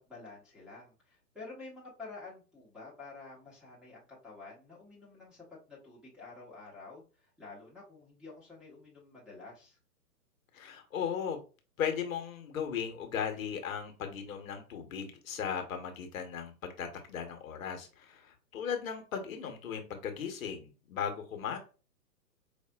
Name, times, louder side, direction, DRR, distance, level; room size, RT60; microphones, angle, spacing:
voice 1, 0.1-9.8, left 3 dB, ahead, -9 dB, 1.0 m, -50 dB
voice 2, 10.5-11.4 11.8-21.6, left 7 dB, 55° left, 5 dB, 1.0 m, -37 dB
4.9 x 2.5 x 2.2 m, 0.34 s
hypercardioid pair, 135°, 48 cm